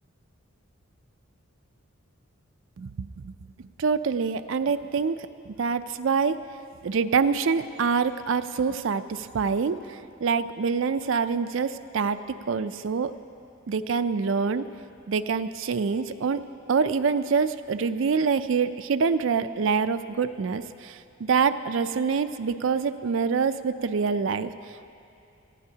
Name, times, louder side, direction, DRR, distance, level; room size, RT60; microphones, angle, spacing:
voice 1, 2.8-3.3 3.8-6.4 6.8-13.1 13.7-14.7 15.1-16.4 16.7-24.5, right 5 dB, 65° right, 10 dB, 0.4 m, -26 dB
20.0 x 14.0 x 2.8 m, 2.6 s
head